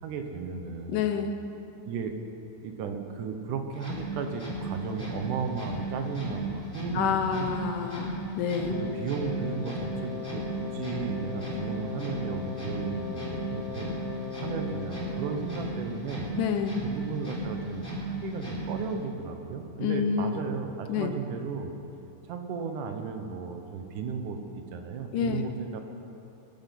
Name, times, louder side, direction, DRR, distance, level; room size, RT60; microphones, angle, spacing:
voice 1, 0.0-1.1 1.8-2.1 2.6-7.5 8.0-8.1 8.7-13.9 14.4-16.3 16.8-21.7 22.3-25.8, right 5 dB, 80° right, 5 dB, 2.7 m, -35 dB
voice 2, 0.9-1.4 6.9-8.8 16.4-16.8 19.8-20.4 20.9-21.1 25.1-25.5, left 7 dB, 85° left, 6 dB, 2.6 m, -28 dB
sound 1, 3.7-19.0, right 1 dB, 15° left, 4.2 m, -36 dB
Wind instrument woodwind instrument, 8.7-16.0, left 7 dB, 65° left, 2.2 m, -39 dB
22.5 x 10.5 x 6.0 m, 2.9 s
omnidirectional pair, 3.6 m